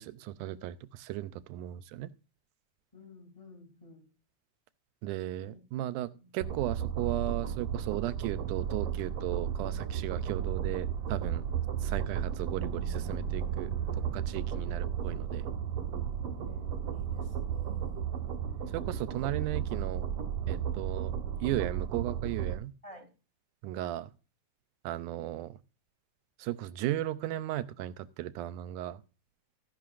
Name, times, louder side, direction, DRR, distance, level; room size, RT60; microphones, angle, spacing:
voice 1, 0.0-2.1 5.0-11.4 11.8-13.8 14.1-15.5 18.7-20.1 20.5-21.1 21.4-22.7 23.6-24.1 24.8-25.6 26.4-29.0, right 14 dB, 90° right, 2.2 m, -36 dB
voice 2, 2.9-4.1 5.4-5.6 6.1-6.3 16.4-18.2 19.1-19.3 22.8-23.1, left 2 dB, 10° left, 2.6 m, -53 dB
sound 1, 6.4-22.5, right 8 dB, 55° right, 1.7 m, -34 dB
sound 2, 8.2-14.7, right 2 dB, 30° right, 1.4 m, -48 dB
14.5 x 10.5 x 2.5 m
omnidirectional pair, 3.5 m